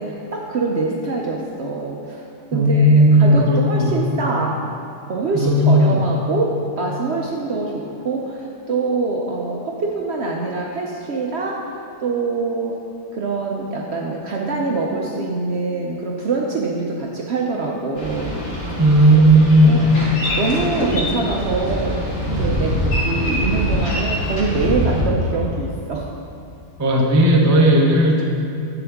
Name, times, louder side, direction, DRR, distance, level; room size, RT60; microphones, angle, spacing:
voice 1, 0.0-2.2 2.5-2.9 3.2-4.6 5.1-11.6 12.0-12.8 13.1-18.3 18.6-18.8 19.1-20.1 20.4-26.1, right 3 dB, 60° right, -1 dB, 0.7 m, -24 dB
voice 2, 2.5-3.9 5.3-6.0 18.8-19.9 26.8-28.3, right 1 dB, 25° right, -1 dB, 0.4 m, -14 dB
Boat Water vehicle, 18.0-25.0, equal, 55° left, 1.9 m, -24 dB
7.9 x 7.2 x 3.5 m, 2.5 s
omnidirectional pair, 1.7 m